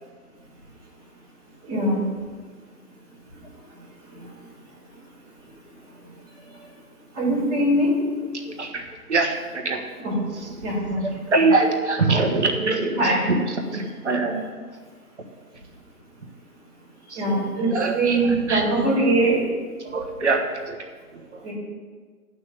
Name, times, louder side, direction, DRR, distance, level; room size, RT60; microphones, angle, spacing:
voice 1, 1.6-2.1 3.3-6.7 7.1-8.0 10.0-11.5 13.0-13.2 17.0-19.5 21.4-21.5, right 1 dB, 10° right, -12 dB, 3.6 m, -25 dB
voice 2, 8.5-9.8 10.6-10.7 11.0-14.5 17.1-17.4 17.7-18.2 18.5-18.6 19.8-20.8 21.1-21.4, right 3 dB, 45° right, 2 dB, 1.4 m, -24 dB
8.8 x 6.2 x 7.6 m, 1.5 s
hypercardioid pair, 170°, 47 cm